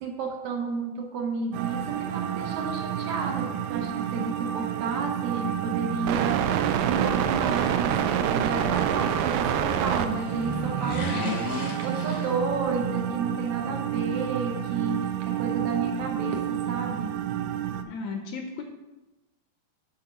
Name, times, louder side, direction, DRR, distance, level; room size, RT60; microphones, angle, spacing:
voice 1, 0.0-6.6 6.9-17.1, right 4 dB, 70° right, 2 dB, 1.9 m, -32 dB
sound 1, 1.5-17.8, right 10 dB, 90° right, 2.3 m, -28 dB
sound 2, 9.6-13.0 13.2-13.3, left 1 dB, 50° left, 1.0 m, -34 dB
voice 2, 17.8-18.6, left 4 dB, 75° left, 4 dB, 1.8 m, -34 dB
11.0 x 4.1 x 5.4 m, 1.0 s
omnidirectional pair, 3.8 m